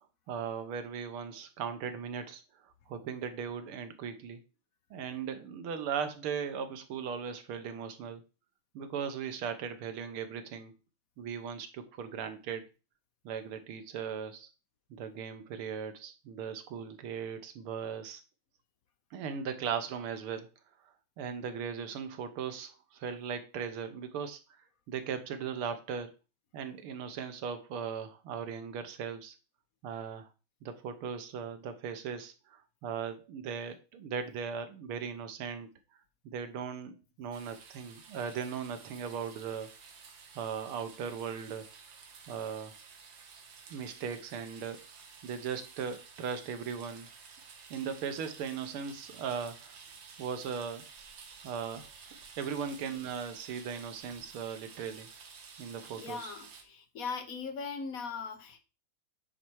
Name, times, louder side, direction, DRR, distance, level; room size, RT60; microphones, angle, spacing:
voice 1, 0.3-2.4 2.9-4.4 4.9-8.2 8.8-10.7 11.2-12.7 13.3-14.5 14.9-18.2 19.1-20.5 21.2-24.4 24.9-26.1 26.5-29.4 29.8-30.3 30.6-35.7 36.3-39.7 40.4-41.7 42.3-42.7 43.7-44.8 45.2-47.1 47.7-49.8 50.2-50.9 51.4-51.9 52.4-55.1 55.6-56.3, right 7 dB, 90° right, 1.9 m, -38 dB
sound 1, 37.3-56.6, right 5 dB, 65° right, 1.9 m, -52 dB
voice 2, 56.0-58.6, left 5 dB, 50° left, 1.3 m, -39 dB
9.2 x 4.3 x 4.7 m
omnidirectional pair, 2.3 m